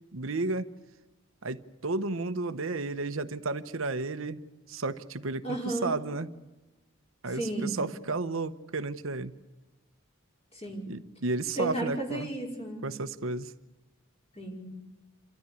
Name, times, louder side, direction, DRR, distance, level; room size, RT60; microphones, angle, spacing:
voice 1, 0.1-0.7 1.4-4.4 4.7-6.3 7.2-9.3 10.9-12.3 12.8-13.5, right 3 dB, 75° right, 10 dB, 1.0 m, -32 dB
voice 2, 5.4-6.0 7.3-7.8 10.5-10.9 11.6-12.9 14.4-14.7, right 2 dB, 30° left, 1 dB, 5.1 m, -33 dB
28.5 x 13.5 x 9.8 m, 1.1 s
head